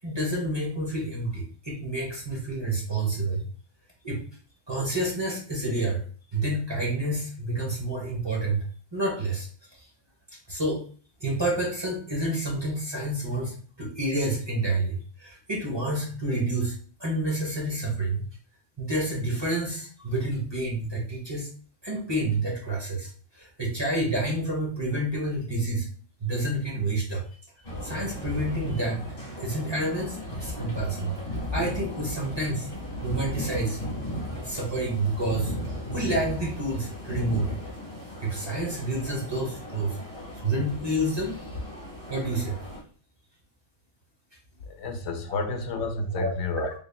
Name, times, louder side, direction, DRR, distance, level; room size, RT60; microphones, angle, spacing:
voice 1, 0.0-3.4 4.0-4.2 4.7-6.0 6.3-8.6 8.9-9.8 10.5-10.8 11.2-16.7 17.0-18.2 18.8-21.5 21.8-25.9 26.2-27.2 27.8-29.0 29.4-31.1 31.5-32.7 33.0-33.8 34.3-35.5 35.9-37.6 38.2-40.0 40.4-41.4 42.1-42.6 46.1-46.3 46.6-46.7, right 1 dB, 25° right, -3 dB, 1.0 m, -29 dB
sound 1, 27.6-42.8, equal, 40° left, 1.5 m, -36 dB
voice 2, 44.7-46.7, left 3 dB, 75° left, 5 dB, 0.9 m, -30 dB
3.9 x 3.5 x 2.2 m, 0.43 s
omnidirectional pair, 1.3 m